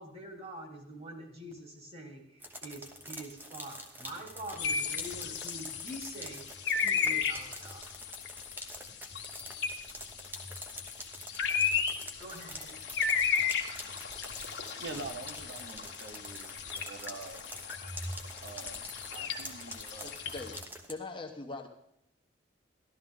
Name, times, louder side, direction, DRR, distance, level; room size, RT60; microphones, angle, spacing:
voice 1, 0.0-6.4 6.8-7.9 11.9-12.8, right 1 dB, 30° right, 2 dB, 2.2 m, -45 dB
sound 1, 2.4-20.9, equal, 10° right, 1.0 m, -46 dB
sound 2, 4.6-20.6, left 6 dB, 60° left, 1.4 m, -35 dB
voice 2, 14.8-17.5 18.4-20.2, right 3 dB, 65° right, 6 dB, 0.8 m, -45 dB
voice 3, 20.0-21.7, left 3 dB, 25° left, 3 dB, 1.0 m, -42 dB
13.5 x 12.5 x 3.7 m, 0.75 s
head